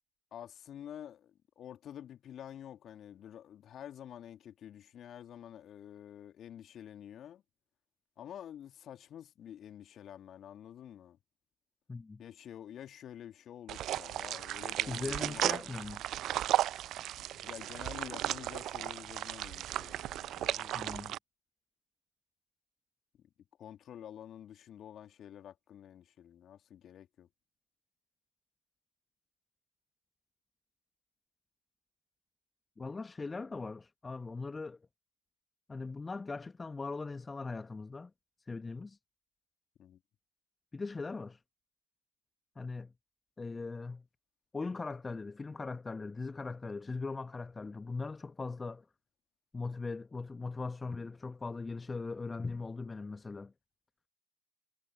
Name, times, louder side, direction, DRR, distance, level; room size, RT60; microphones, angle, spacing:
voice 1, 0.3-7.4 8.2-11.2 12.2-15.7 17.3-20.9 23.2-23.3 23.6-27.3 39.8-40.0, left 10 dB, 35° left, 2.2 m, -49 dB
voice 2, 11.9-12.2 14.9-16.0 20.7-21.1 32.8-34.8 35.7-38.1 38.5-39.0 40.7-41.4 42.6-42.9 43.4-44.0 44.5-48.8 49.5-53.5, left 3 dB, 15° left, 1.1 m, -40 dB
sound 1, 13.7-21.2, right 13 dB, 40° right, 0.5 m, -35 dB
figure-of-eight pair, 80°, 0 cm